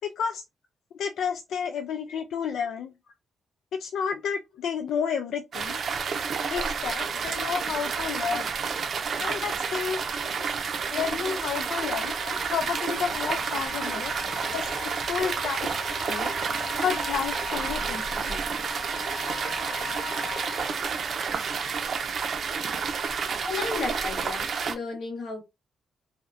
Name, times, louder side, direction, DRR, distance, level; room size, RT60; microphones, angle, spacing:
voice 1, 0.0-0.4 0.9-2.9 3.7-5.8 6.5-8.5 9.2-10.0 10.9-15.7 16.1-16.3 16.8-18.0 18.3-18.4, left 7 dB, 80° left, 0.3 m, -31 dB
sound 1, 5.5-24.8, right 5 dB, 45° right, 0.5 m, -30 dB
Wind instrument woodwind instrument, 11.2-20.7, left 7 dB, 30° left, 0.5 m, -41 dB
voice 2, 23.4-25.4, left 4 dB, 60° left, 1.2 m, -34 dB
4.8 x 2.2 x 2.5 m
wide cardioid pair, 165°, 0 cm